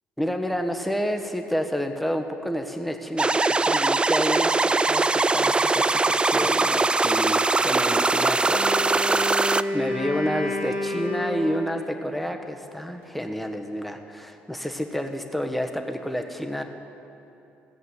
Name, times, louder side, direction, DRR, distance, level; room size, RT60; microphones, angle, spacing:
voice 1, 0.2-16.6, equal, ahead, 5 dB, 1.2 m, -30 dB
sound 1, 3.2-9.6, right 3 dB, 15° right, 0.3 m, -21 dB
Wind instrument woodwind instrument, 8.4-11.9, left 1 dB, 45° right, 2.2 m, -30 dB
14.0 x 8.1 x 7.7 m, 2.8 s
figure-of-eight pair, 45°, 6 cm